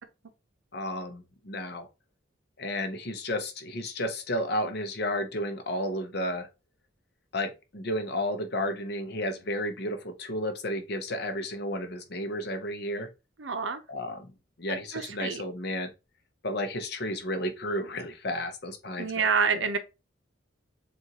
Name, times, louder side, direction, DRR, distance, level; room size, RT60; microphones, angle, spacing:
voice 1, 0.7-1.9 2.6-6.5 7.3-13.1 13.9-14.3 14.6-15.9 16.4-19.3 19.5-19.7, left 1 dB, 55° left, 0.9 m, -32 dB
voice 2, 13.4-13.8 14.9-15.4 19.0-19.8, right 5 dB, 75° right, 0.7 m, -27 dB
7.1 x 2.5 x 2.9 m
head